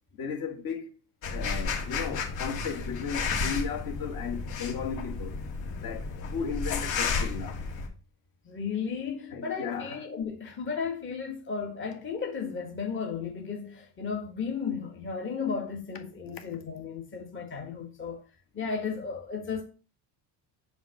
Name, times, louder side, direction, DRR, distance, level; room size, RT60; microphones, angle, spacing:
voice 1, 0.1-0.9 1.2-5.4 5.8-7.6 9.3-10.0 16.4-16.5, left 6 dB, 50° left, 2.0 m, -35 dB
sound 1, 1.2-7.9, left 4 dB, 70° left, 2.6 m, -32 dB
voice 2, 8.4-18.2 18.5-19.6, left 6 dB, 25° left, 1.5 m, -34 dB
7.2 x 3.6 x 6.4 m
cardioid pair, 125°, 45 cm